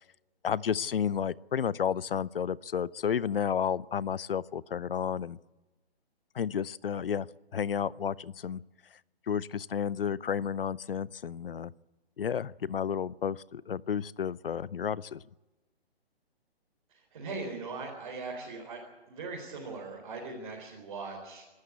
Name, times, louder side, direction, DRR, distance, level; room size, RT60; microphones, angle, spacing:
voice 1, 0.4-5.4 6.3-7.3 7.5-8.6 9.3-11.7 12.2-15.2, left 8 dB, 60° left, 22 dB, 0.6 m, -31 dB
voice 2, 16.9-18.8 19.1-21.4, right 3 dB, 35° right, -2 dB, 4.3 m, -40 dB
24.5 x 13.0 x 8.5 m, 1.1 s
hypercardioid pair, 180°, 32 cm